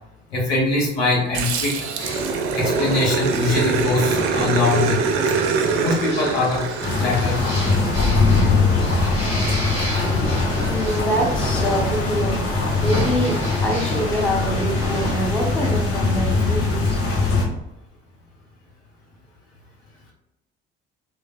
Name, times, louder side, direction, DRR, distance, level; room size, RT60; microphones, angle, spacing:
voice 1, 0.3-1.9 2.5-5.0 5.8-6.6 7.0-7.6 8.0-8.1, left 3 dB, 70° left, -3 dB, 0.9 m, -22 dB
Growling, 1.3-8.0, right 5 dB, 45° right, 0.4 m, -24 dB
sound 1, 2.0-15.1, equal, 20° left, 1.2 m, -32 dB
sound 2, 6.8-17.5, left 3 dB, 45° left, 0.8 m, -21 dB
voice 2, 10.6-12.4 12.8-17.0, equal, 5° left, 0 dB, 0.5 m, -25 dB
3.2 x 2.1 x 2.4 m, 0.90 s
figure-of-eight pair, 55°, 32 cm